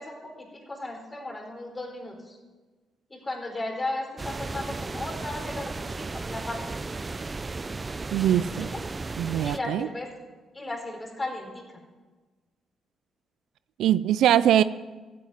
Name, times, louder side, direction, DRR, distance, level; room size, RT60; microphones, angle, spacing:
voice 1, 0.0-2.4 3.1-6.7 8.6-8.8 9.4-10.1 10.5-11.6, left 2 dB, 25° left, 2 dB, 4.5 m, -35 dB
sound 1, 4.2-9.6, right 3 dB, 30° right, 0.6 m, -35 dB
voice 2, 8.1-8.7 9.2-9.9 13.8-14.6, right 11 dB, 80° right, 16 dB, 0.4 m, -22 dB
14.0 x 8.6 x 9.3 m, 1.3 s
supercardioid pair, 55°, 0 cm